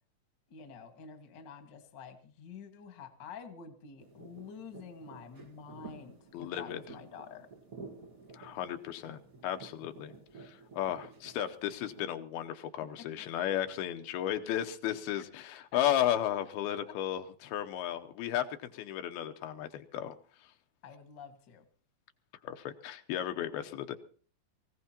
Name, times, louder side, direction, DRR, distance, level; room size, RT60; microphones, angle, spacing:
voice 1, 0.5-7.5 12.8-13.1 15.1-15.2 15.7-15.8 16.9-17.0 20.8-21.6, left 6 dB, 45° left, 6 dB, 1.5 m, -48 dB
sound 1, 4.0-12.0, right 4 dB, 45° right, 1.1 m, -52 dB
voice 2, 6.3-6.8 8.3-10.1 10.4-20.2 22.4-24.0, left 11 dB, 80° left, 8 dB, 2.7 m, -34 dB
24.0 x 16.0 x 2.9 m, 0.42 s
omnidirectional pair, 4.4 m